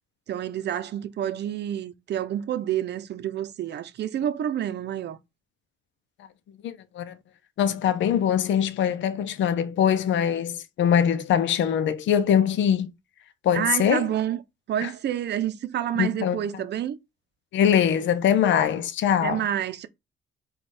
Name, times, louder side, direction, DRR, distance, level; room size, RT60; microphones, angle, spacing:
voice 1, 0.3-5.2 13.5-14.4 14.7-17.0 19.2-19.9, right 10 dB, 60° right, 0.6 m, -28 dB
voice 2, 6.6-7.2 7.6-12.9 13.4-14.1 14.8-14.9 16.0-16.4 17.5-19.5, left 8 dB, 70° left, 0.6 m, -22 dB
4.6 x 2.4 x 4.1 m
cardioid pair, 90°, 20 cm